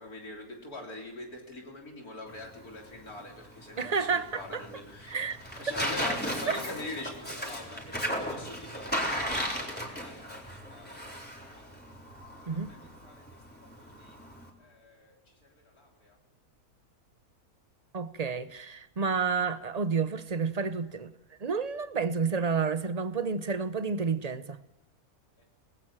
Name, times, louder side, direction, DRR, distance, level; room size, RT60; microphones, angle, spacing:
voice 1, 0.0-5.2 5.6-11.9 12.5-12.8 13.0-13.1 13.6-14.2 14.6-16.2 25.4-25.5, left 2 dB, 80° left, 4.1 m, -44 dB
Tearing, 2.3-14.5, equal, 5° left, 4.0 m, -36 dB
voice 2, 3.8-4.6 5.1-5.4 6.5-6.6 12.5-12.7 17.9-21.1 21.4-24.6, right 5 dB, 30° right, 0.8 m, -30 dB
27.0 x 19.5 x 7.5 m
omnidirectional pair, 1.6 m